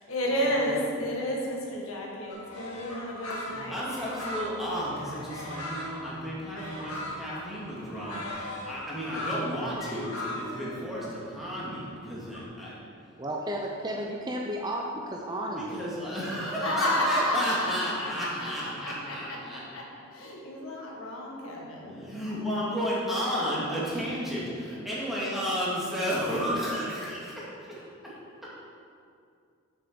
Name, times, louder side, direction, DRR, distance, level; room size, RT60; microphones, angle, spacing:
voice 1, 0.1-3.8 16.6-19.8 20.1-22.0, equal, 65° left, -2 dB, 1.7 m, -31 dB
sound 1, 2.3-12.4, left 1 dB, 85° left, 2.0 m, -39 dB
voice 2, 3.5-12.7 15.5-19.6 21.8-28.5, equal, ahead, -8 dB, 2.2 m, -33 dB
voice 3, 13.2-15.8, right 1 dB, 20° right, 0 dB, 0.6 m, -33 dB
7.6 x 6.5 x 6.1 m, 2.3 s
head